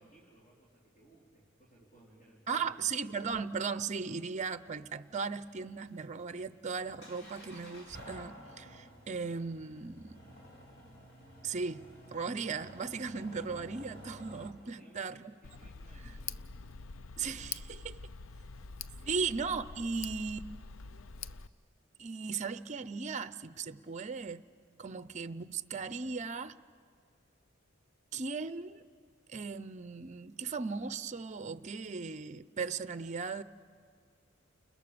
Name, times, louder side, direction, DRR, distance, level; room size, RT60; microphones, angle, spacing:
voice 1, 0.0-2.6 14.6-16.5 19.0-19.3 24.8-25.0, right 1 dB, 40° left, -5 dB, 4.2 m, -62 dB
voice 2, 2.5-10.2 11.4-15.3 17.2-18.0 19.1-20.5 22.0-24.4 24.8-26.5 28.1-28.8 29.3-33.4, right 5 dB, 35° right, 14 dB, 0.6 m, -37 dB
sound 1, 5.4-14.5, equal, 55° left, 4.9 m, -52 dB
Tick, 15.4-21.5, left 5 dB, 75° left, 0.6 m, -45 dB
30.0 x 29.0 x 6.9 m, 2.1 s
head